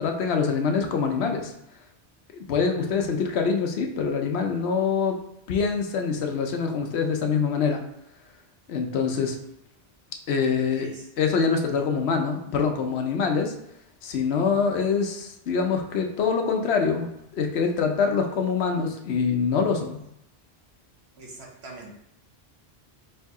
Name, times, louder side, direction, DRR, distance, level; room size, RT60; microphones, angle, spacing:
voice 1, 0.0-1.5 2.3-5.2 5.5-7.8 8.7-9.4 10.3-10.9 11.2-13.5 14.0-20.0, left 5 dB, 80° left, 3 dB, 0.9 m, -25 dB
voice 2, 10.7-11.1 21.2-21.9, right 2 dB, 80° right, -1 dB, 1.3 m, -43 dB
3.3 x 2.7 x 4.6 m, 0.79 s
omnidirectional pair, 1.1 m